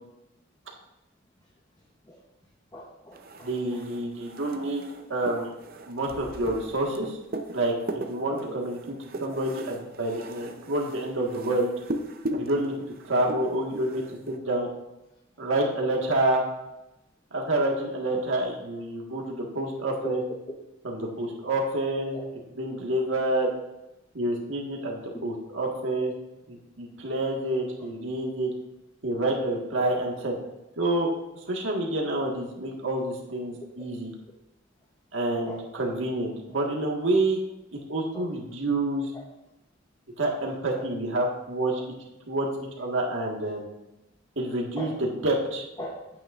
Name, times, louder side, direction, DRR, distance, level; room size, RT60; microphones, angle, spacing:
voice 1, 2.7-3.8 8.3-8.6 16.0-16.1 18.1-18.2 20.0-20.1 22.1-22.3 23.4-23.5 24.3-24.4 27.8-27.9 29.8-29.9 35.1-36.0 38.1-38.2 39.1-39.2 40.4-40.9 41.8-41.9 44.8-45.0 45.8-46.1, equal, 20° left, -2 dB, 0.8 m, -41 dB
sound 1, 3.1-14.4, right 1 dB, 45° right, 0.6 m, -38 dB
voice 2, 3.4-4.8 5.1-5.5 5.9-7.2 7.5-8.8 9.2-11.7 12.3-12.7 13.0-14.7 15.4-16.4 17.3-20.2 20.8-22.2 22.6-23.5 24.1-26.1 26.5-28.5 29.0-30.3 30.8-31.1 31.4-34.1 35.1-37.4 37.7-39.1 40.2-41.8 42.3-42.5 42.8-43.7 44.3-45.6, right 1 dB, 65° right, -1 dB, 1.6 m, -28 dB
9.2 x 8.7 x 2.5 m, 0.93 s
head